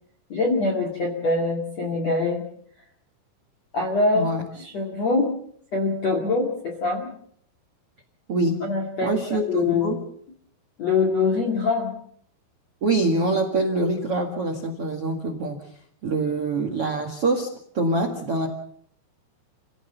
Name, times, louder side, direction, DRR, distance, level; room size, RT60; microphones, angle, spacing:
voice 1, 0.3-2.5 3.7-4.3 4.6-5.4 5.7-7.1 8.6-9.9 10.8-12.0, left 3 dB, 45° left, 1 dB, 2.6 m, -24 dB
voice 2, 4.1-4.4 8.3-8.6 9.0-10.0 12.8-15.8 16.0-18.5, right 2 dB, 60° right, 6 dB, 1.5 m, -25 dB
28.5 x 16.5 x 7.0 m, 0.65 s
omnidirectional pair, 5.9 m